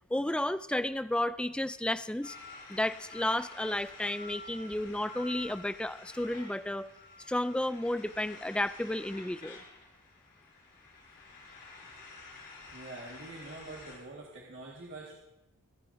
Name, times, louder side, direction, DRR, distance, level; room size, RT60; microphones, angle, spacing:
voice 1, 0.1-2.4 2.7-6.9 7.3-9.6, left 1 dB, 5° left, 13 dB, 0.3 m, -32 dB
sound 1, 2.2-14.0, left 3 dB, 50° left, 3.3 m, -49 dB
voice 2, 12.7-15.1, right 2 dB, 55° right, -3 dB, 1.7 m, -45 dB
26.5 x 10.0 x 2.6 m, 0.94 s
head